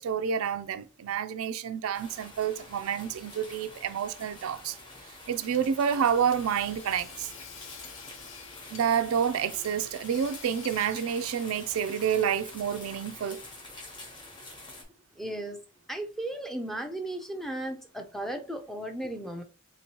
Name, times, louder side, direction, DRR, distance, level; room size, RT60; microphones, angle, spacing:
voice 1, 0.0-4.8 5.3-7.3 8.7-13.4, right 8 dB, 80° right, 0.3 m, -29 dB
sound 1, 1.9-14.8, left 2 dB, 20° left, 0.8 m, -47 dB
Hammer / Sawing, 5.5-13.7, left 6 dB, 65° left, 0.6 m, -49 dB
voice 2, 15.2-15.6 15.9-19.4, right 1 dB, ahead, 0.4 m, -35 dB
3.7 x 3.0 x 2.8 m
head